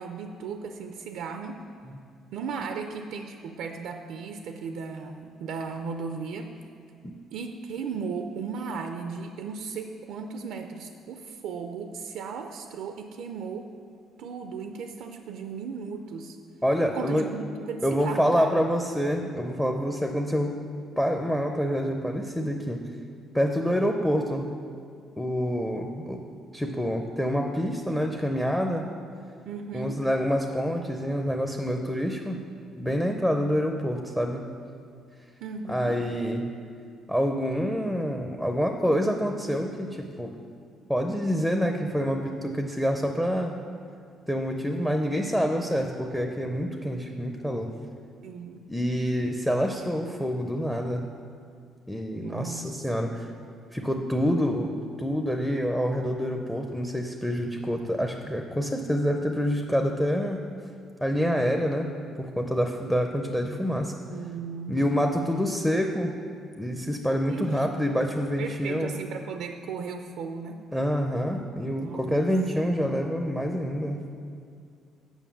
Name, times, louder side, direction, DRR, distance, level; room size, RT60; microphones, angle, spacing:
voice 1, 0.0-1.6 2.3-6.5 7.3-13.7 14.2-16.4 16.9-18.6 29.5-30.0 35.4-36.0 48.2-48.6 52.1-53.2 64.1-64.8 65.2-65.6 67.3-67.7 68.4-70.6 71.8-72.3, right 5 dB, 80° right, 6 dB, 0.4 m, -36 dB
voice 2, 16.6-17.3 17.8-20.6 21.0-22.8 23.3-24.5 25.2-26.2 26.5-28.9 29.7-32.4 32.8-34.5 35.7-36.5 37.1-40.3 40.9-43.6 44.3-47.7 48.7-51.1 51.9-53.3 53.7-60.4 61.0-61.9 62.2-63.9 64.7-66.1 66.6-68.9 70.7-74.0, equal, 5° left, 4 dB, 0.5 m, -27 dB
7.2 x 5.4 x 7.1 m, 2.2 s
cardioid pair, 115°, 0 cm